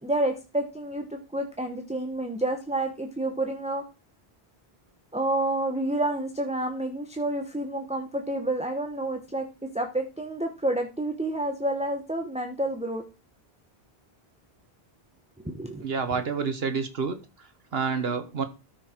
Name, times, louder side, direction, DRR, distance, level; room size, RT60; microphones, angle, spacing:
voice 1, 0.0-3.8 5.1-9.4 9.7-13.0 15.4-15.9 16.1-16.2, right 1 dB, 5° right, 4 dB, 1.1 m, -29 dB
voice 2, 15.8-17.2 17.7-18.4, right 5 dB, 70° right, 9 dB, 1.4 m, -28 dB
13.5 x 6.3 x 4.5 m, 0.29 s
omnidirectional pair, 1.1 m